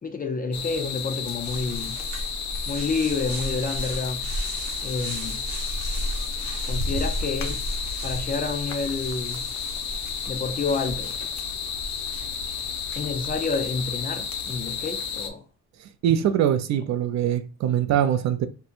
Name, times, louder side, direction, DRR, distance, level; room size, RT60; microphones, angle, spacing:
voice 1, 0.0-2.0 2.7-4.3 4.8-5.5 6.6-7.6 8.0-9.4 10.3-11.2 13.0-15.4, left 4 dB, 30° left, 0.5 m, -29 dB
sound 1, 0.5-15.3, left 7 dB, 65° left, 0.7 m, -32 dB
sound 2, 1.4-14.0, right 1 dB, 85° right, 1.0 m, -34 dB
voice 2, 15.8-18.5, right 10 dB, 65° right, 0.4 m, -23 dB
4.3 x 2.2 x 2.5 m
cardioid pair, 90°, 30 cm